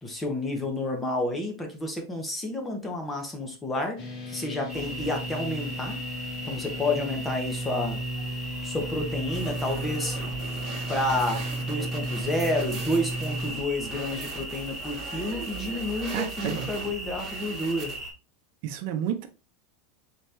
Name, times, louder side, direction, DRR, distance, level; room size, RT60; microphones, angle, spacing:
voice 1, 0.0-4.0 4.3-6.0 6.4-8.0 8.6-10.2 10.9-17.9, left 1 dB, 15° left, 1.0 m, -30 dB
sound 1, 4.0-13.5, right 1 dB, 50° left, 1.7 m, -34 dB
sound 2, 4.7-18.1, right 1 dB, 5° right, 1.4 m, -38 dB
sound 3, 9.3-18.0, right 5 dB, 30° right, 1.4 m, -41 dB
voice 2, 16.1-16.7 18.6-19.3, right 9 dB, 60° right, 0.7 m, -30 dB
4.1 x 3.0 x 3.3 m
supercardioid pair, 140°, 0 cm